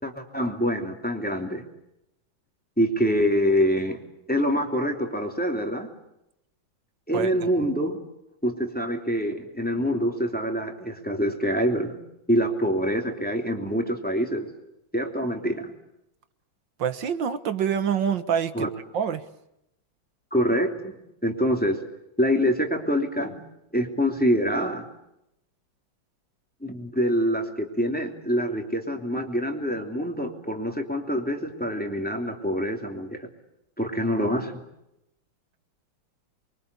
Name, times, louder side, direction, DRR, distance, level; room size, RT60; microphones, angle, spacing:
voice 1, 0.0-1.6 2.8-4.0 4.3-5.9 7.1-8.0 8.4-12.0 12.3-14.5 14.9-15.7 18.5-18.7 20.3-21.0 21.2-21.8 22.2-23.4 23.7-24.9 26.6-33.3 33.8-34.6, equal, 5° left, 3 dB, 2.9 m, -25 dB
voice 2, 16.8-18.7 18.9-19.2, right 8 dB, 70° right, 11 dB, 1.9 m, -26 dB
28.5 x 23.5 x 8.3 m, 0.84 s
omnidirectional pair, 2.2 m